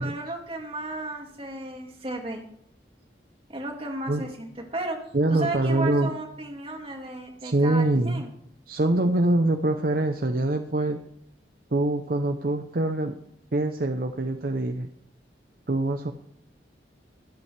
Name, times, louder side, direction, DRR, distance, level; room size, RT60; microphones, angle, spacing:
voice 1, 0.0-2.4 3.5-5.0 5.3-8.3, right 2 dB, 30° right, 2 dB, 2.3 m, -34 dB
voice 2, 5.1-6.1 7.4-8.2 8.7-11.0 11.7-13.1 13.5-14.9 15.7-16.1, right 2 dB, 50° right, 5 dB, 0.7 m, -24 dB
24.5 x 8.2 x 3.3 m, 0.71 s
head